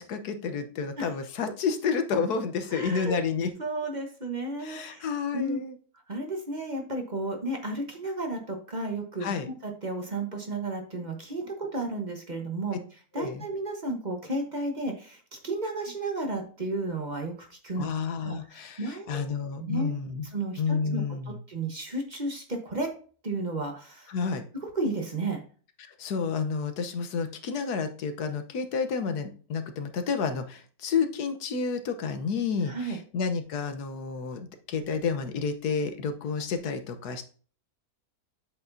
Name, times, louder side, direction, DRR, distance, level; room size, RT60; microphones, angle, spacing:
voice 1, 0.0-3.5 4.6-5.8 9.2-9.5 13.2-13.4 17.8-20.3 20.6-21.4 24.1-24.4 25.8-37.2, left 5 dB, 90° left, 8 dB, 1.5 m, -30 dB
voice 2, 2.7-3.1 3.6-5.6 6.1-12.8 13.1-17.9 18.2-19.2 19.6-19.9 20.3-21.0 21.5-22.9 23.2-24.1 24.6-25.4 32.6-33.0, right 2 dB, 30° right, 3 dB, 1.2 m, -33 dB
7.8 x 6.6 x 2.7 m, 0.41 s
omnidirectional pair, 1.6 m